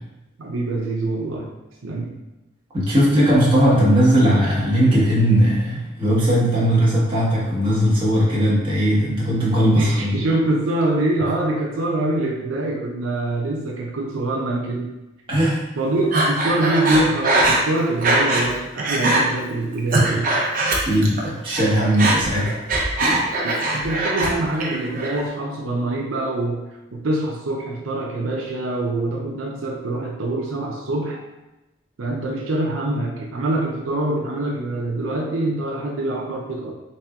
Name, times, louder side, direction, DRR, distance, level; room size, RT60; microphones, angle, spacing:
voice 1, 0.4-1.5 1.8-2.1 9.8-14.9 15.8-20.3 23.4-26.6 26.9-31.2 32.0-36.7, right 2 dB, 85° right, -2 dB, 0.6 m, -24 dB
voice 2, 2.7-10.1 11.3-11.4 15.3-15.6 20.9-22.5, equal, 25° right, -8 dB, 1.3 m, -18 dB
Breathing, 16.1-18.5 18.8-19.2 19.7-21.2 21.5-24.3 24.6-25.2, right 2 dB, 45° right, 0.7 m, -21 dB
4.2 x 3.3 x 2.3 m, 0.99 s
head